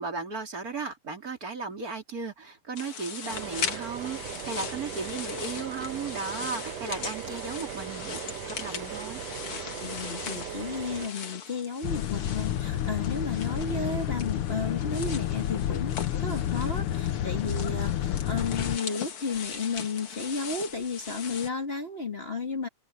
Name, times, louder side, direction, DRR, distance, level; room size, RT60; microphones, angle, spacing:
voice 1, 0.0-9.2, right 4 dB, 30° right, 3.6 m, -36 dB
sound 1, 2.8-21.5, left 7 dB, 50° left, 2.4 m, -40 dB
sound 2, 3.3-11.1, right 11 dB, 70° right, 1.8 m, -39 dB
voice 2, 9.8-22.7, left 4 dB, 25° left, 1.6 m, -33 dB
sound 3, 11.8-18.8, left 11 dB, 70° left, 1.4 m, -30 dB
open air
omnidirectional pair, 3.4 m